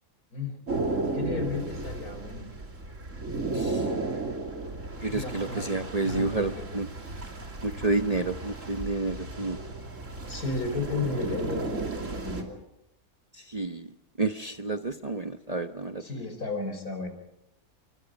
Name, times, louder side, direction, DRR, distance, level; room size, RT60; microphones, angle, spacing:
sound 1, 0.7-12.4, right 2 dB, 55° right, 3.3 m, -34 dB
voice 1, 1.1-2.5 5.1-6.7 10.3-12.6 16.0-17.1, left 3 dB, 80° left, 7 dB, 5.4 m, -34 dB
voice 2, 3.5-3.9 5.0-6.9 7.6-9.6 13.5-13.9 14.2-16.0, right 3 dB, 30° right, 6 dB, 0.9 m, -30 dB
27.5 x 24.5 x 5.3 m, 0.84 s
omnidirectional pair, 1.6 m